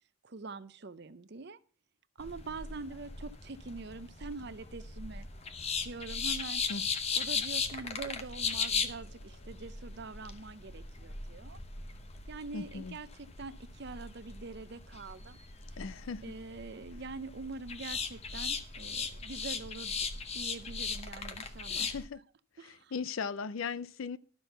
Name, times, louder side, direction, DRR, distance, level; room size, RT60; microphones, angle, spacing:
voice 1, 0.2-1.6 2.2-5.3 5.8-6.6 7.2-11.6 12.3-15.4 15.7-15.8 16.2-20.1 20.3-21.9 22.6-22.9, right 3 dB, 50° right, 0.6 m, -44 dB
sound 1, 2.2-22.0, left 5 dB, 30° left, 0.8 m, -38 dB
voice 2, 12.5-13.0 15.8-16.3 21.7-22.2 22.6-24.2, left 5 dB, 70° left, 0.5 m, -38 dB
12.0 x 6.2 x 6.7 m
head